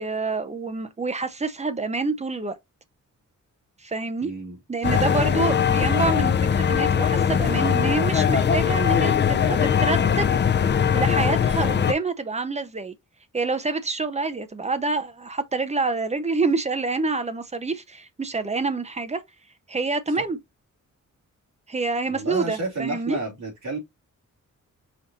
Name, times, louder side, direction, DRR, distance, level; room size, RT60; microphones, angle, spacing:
voice 1, 0.0-2.5 3.8-4.3 4.7-10.3 10.9-12.9 13.3-19.2 19.7-20.4 21.7-23.2, right 3 dB, 20° right, 0.6 m, -27 dB
voice 2, 4.2-4.6 4.9-5.0 20.1-20.2 22.1-23.8, right 2 dB, 65° right, 2.6 m, -31 dB
sound 1, 4.8-11.9, left 7 dB, 35° left, 0.4 m, -21 dB
5.1 x 2.5 x 4.1 m
wide cardioid pair, 150°, 31 cm